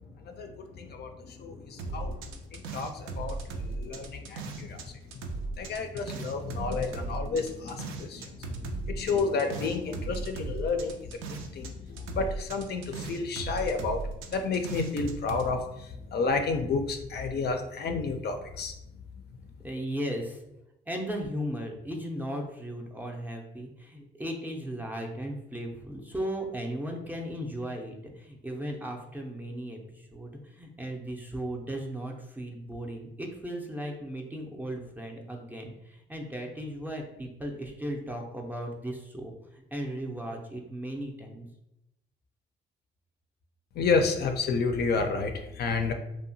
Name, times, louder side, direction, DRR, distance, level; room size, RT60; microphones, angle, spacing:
voice 1, 0.4-2.2 2.5-4.8 5.6-10.9 11.5-14.0 14.3-18.7 43.8-45.9, left 4 dB, 55° left, 6 dB, 0.4 m, -30 dB
sound 1, 1.8-4.8 5.1-11.7 12.0-15.5, right 3 dB, 85° right, 0.4 m, -37 dB
voice 2, 19.6-20.4 20.9-39.3 39.7-41.5, equal, 10° right, 1 dB, 0.4 m, -36 dB
2.8 x 2.1 x 2.6 m, 0.87 s
cardioid pair, 90°, 20 cm